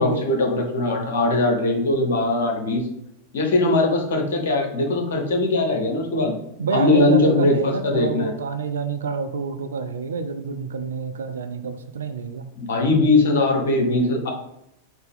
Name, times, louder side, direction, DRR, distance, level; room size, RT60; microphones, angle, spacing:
voice 1, 0.0-2.9 3.3-6.3 6.7-8.3 12.6-14.3, left 2 dB, 60° left, 2 dB, 1.1 m, -20 dB
voice 2, 6.6-12.4, right 5 dB, 65° right, 7 dB, 0.3 m, -27 dB
4.0 x 2.7 x 3.7 m, 0.79 s
figure-of-eight pair, 90°, 0 cm